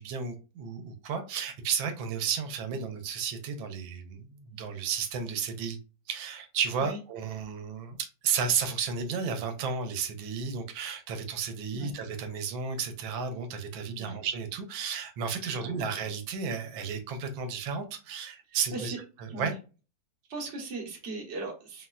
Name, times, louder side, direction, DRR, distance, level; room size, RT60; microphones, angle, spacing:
voice 1, 0.0-5.8 6.1-19.5, right 6 dB, 85° right, 1.4 m, -33 dB
voice 2, 15.4-15.8 18.5-19.0 19.3-19.5 20.3-21.9, right 2 dB, 45° right, 1.1 m, -39 dB
4.0 x 2.1 x 2.3 m
omnidirectional pair, 2.1 m